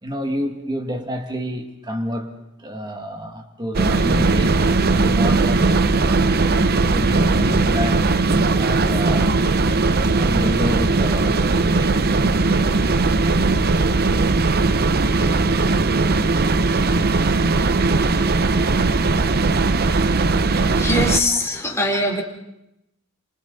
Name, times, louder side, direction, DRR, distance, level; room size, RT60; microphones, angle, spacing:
voice 1, 0.0-2.3 2.6-6.5 6.9-8.1 8.5-9.4 10.0-12.1, equal, 20° right, 4 dB, 2.2 m, -29 dB
sound 1, 3.7-21.2, right 3 dB, 45° right, 0.7 m, -18 dB
voice 2, 20.8-22.2, left 1 dB, 15° left, 0 dB, 3.7 m, -21 dB
29.5 x 27.5 x 4.1 m, 0.87 s
head